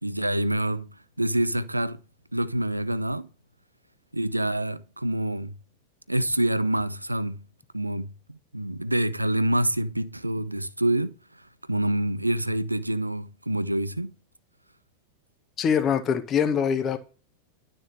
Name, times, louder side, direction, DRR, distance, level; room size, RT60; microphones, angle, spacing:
voice 1, 0.0-2.0 2.3-3.3 4.1-5.5 6.1-7.4 7.7-11.2 11.7-14.1, right 1 dB, 85° right, 0.9 m, -26 dB
voice 2, 15.6-17.0, left 7 dB, 30° left, 1.6 m, -23 dB
12.5 x 6.8 x 7.9 m
figure-of-eight pair, 90°, 0 cm